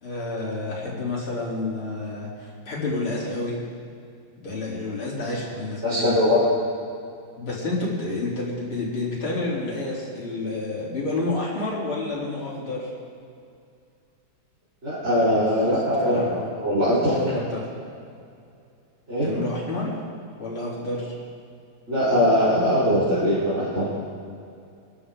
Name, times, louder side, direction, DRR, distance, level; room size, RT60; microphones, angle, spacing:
voice 1, 0.0-3.5 4.4-6.1 7.4-12.9 15.6-16.5 17.2-17.6 19.2-19.9 20.4-21.1, left 2 dB, 80° left, -5 dB, 4.1 m, -29 dB
voice 2, 5.8-6.5 14.8-16.2 16.5-17.2 19.1-19.3 21.9-23.9, equal, 30° right, -12 dB, 4.3 m, -21 dB
24.5 x 13.0 x 3.7 m, 2.4 s
omnidirectional pair, 2.3 m